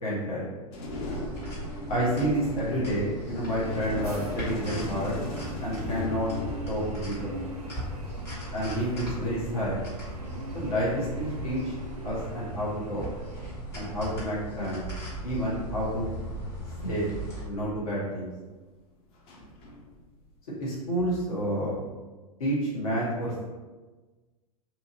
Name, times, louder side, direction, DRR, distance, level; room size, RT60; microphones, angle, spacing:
voice 1, 0.0-0.5 1.9-5.2 5.6-6.3 6.7-7.3 8.5-9.8 10.5-11.8 12.0-13.0 13.7-14.8 15.2-16.1 16.8-17.1 17.4-18.3 20.6-21.8 22.4-23.4, equal, 65° left, -8 dB, 0.9 m, -29 dB
sound 1, 0.7-8.1 9.3-9.4 9.6-10.9 12.0-12.3 13.5-13.6 14.1-14.4 15.2-17.6 19.1-20.3, left 2 dB, 30° left, 0.5 m, -40 dB
sound 2, 0.9-17.4, right 1 dB, 15° left, 1.5 m, -38 dB
sound 3, 3.5-13.6, right 1 dB, 75° right, 0.4 m, -41 dB
2.8 x 2.5 x 2.5 m, 1.3 s
figure-of-eight pair, 95°, 20 cm